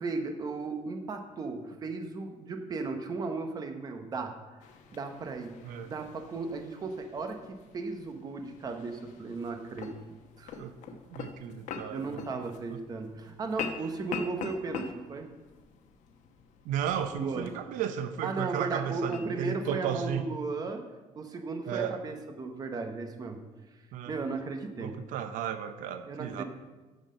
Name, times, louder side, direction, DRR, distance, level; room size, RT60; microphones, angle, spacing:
voice 1, 0.0-4.3 4.9-5.6 5.8-10.0 10.4-10.6 11.9-15.3 17.1-17.5 18.2-20.8 21.2-23.4 24.1-25.0 26.1-26.4, right 3 dB, 30° right, 6 dB, 0.9 m, -36 dB
sound 1, 4.6-19.8, left 6 dB, 70° left, 1.1 m, -44 dB
voice 2, 11.1-12.8 16.6-20.3 21.7-21.9 23.9-24.1 24.8-26.4, right 9 dB, 85° right, 10 dB, 0.6 m, -34 dB
9.2 x 6.3 x 6.4 m, 1.2 s
cardioid pair, 170°, 13 cm